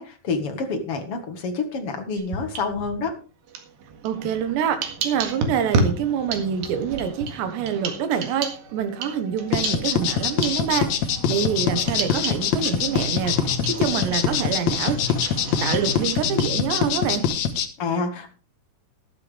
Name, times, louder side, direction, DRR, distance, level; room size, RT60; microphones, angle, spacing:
voice 1, 0.0-3.1 17.8-18.3, left 4 dB, 50° left, 5 dB, 1.8 m, -28 dB
sound 1, 2.1-3.1 3.5-17.2, right 3 dB, 65° right, 3.4 m, -32 dB
voice 2, 4.0-15.0 15.6-17.2, right 8 dB, 90° right, 8 dB, 3.5 m, -26 dB
sound 2, 9.5-17.7, left 8 dB, 75° left, 1.6 m, -23 dB
sound 3, 10.0-16.0, left 4 dB, 15° left, 3.5 m, -37 dB
13.5 x 12.5 x 3.4 m, 0.35 s
omnidirectional pair, 4.8 m